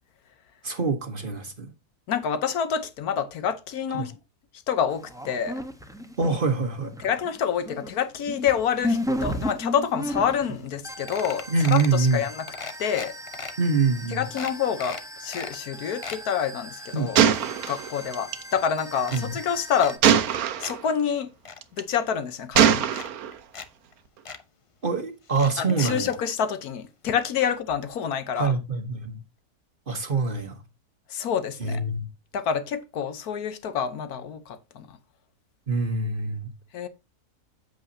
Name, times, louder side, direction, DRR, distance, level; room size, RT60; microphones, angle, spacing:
voice 1, 0.6-1.7 3.9-4.1 6.2-6.9 11.5-12.2 13.6-14.3 16.9-17.1 19.1-19.4 24.8-26.1 28.4-29.2 29.9-30.6 31.6-32.1 35.7-36.5, right 4 dB, 40° right, 1.2 m, -25 dB
voice 2, 2.1-4.1 4.7-5.6 7.0-12.5 12.8-13.1 14.1-17.2 17.7-20.0 20.6-21.3 21.8-22.8 25.6-28.5 31.1-31.8 32.3-34.9 36.7-36.9, left 8 dB, 75° left, 1.4 m, -27 dB
sound 1, 4.9-6.6 6.8-20.0, left 1 dB, 5° right, 0.7 m, -36 dB
sound 2, 10.4-10.5 10.7-10.8 11.1-12.0 12.5-13.5 14.0-14.1 14.4-15.5 15.8-16.2 16.7-18.3 18.5-19.2 19.8-20.7 21.1-21.6 22.4-22.5 22.9-23.7 23.9-24.0 24.2-24.4 25.3-26.2 27.1-27.2 27.5-27.6, left 4 dB, 40° left, 0.4 m, -39 dB
Gunshot gunfire, 17.1-18.4 20.0-20.8 21.6-22.0 22.5-23.3, right 9 dB, 70° right, 1.2 m, -21 dB
8.2 x 7.8 x 2.7 m
omnidirectional pair, 1.6 m